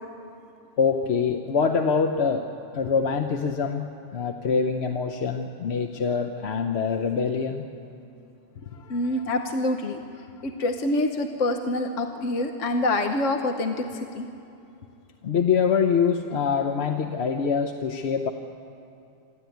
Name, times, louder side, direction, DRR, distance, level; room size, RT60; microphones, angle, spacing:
voice 1, 0.8-2.4 2.7-7.7 8.7-9.3 15.2-18.3, left 6 dB, 60° left, 5 dB, 1.0 m, -25 dB
voice 2, 8.9-10.0 10.4-13.8 14.1-14.3, left 2 dB, 75° left, 5 dB, 1.3 m, -26 dB
25.5 x 13.5 x 9.3 m, 2.7 s
omnidirectional pair, 1.3 m